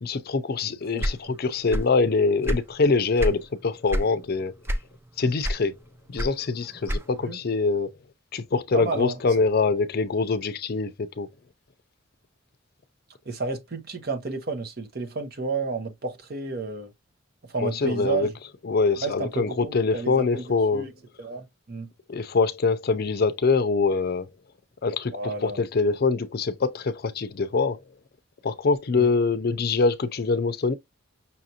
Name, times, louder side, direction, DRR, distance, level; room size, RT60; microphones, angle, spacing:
voice 1, 0.0-4.5 5.2-5.7 6.1-7.9 8.3-11.3 17.6-18.3 18.6-20.9 22.1-24.3 24.8-27.8 28.4-30.7, left 4 dB, 50° left, 0.5 m, -24 dB
voice 2, 0.6-1.4 7.2-7.4 8.7-9.2 13.3-16.9 17.5-18.3 18.9-20.9 21.2-21.9 25.1-25.6 28.9-29.1, right 4 dB, 50° right, 0.8 m, -32 dB
sound 1, 1.0-2.0 2.3-3.4 3.9-4.2 4.6-5.1 5.4-7.3, equal, 10° right, 0.3 m, -27 dB
5.6 x 2.5 x 2.8 m
head